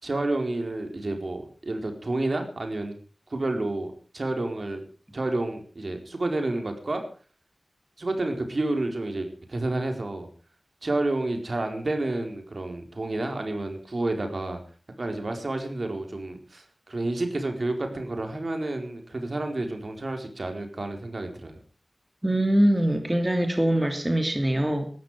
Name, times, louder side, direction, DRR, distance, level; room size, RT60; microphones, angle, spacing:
voice 1, 0.0-2.9 3.3-4.8 5.1-7.0 8.0-10.3 10.8-14.6 15.0-21.6, right 2 dB, 65° right, 5 dB, 4.4 m, -30 dB
voice 2, 22.2-24.8, right 1 dB, 20° right, 5 dB, 3.1 m, -23 dB
19.0 x 14.0 x 5.0 m, 0.38 s
wide cardioid pair, 70°, 0 cm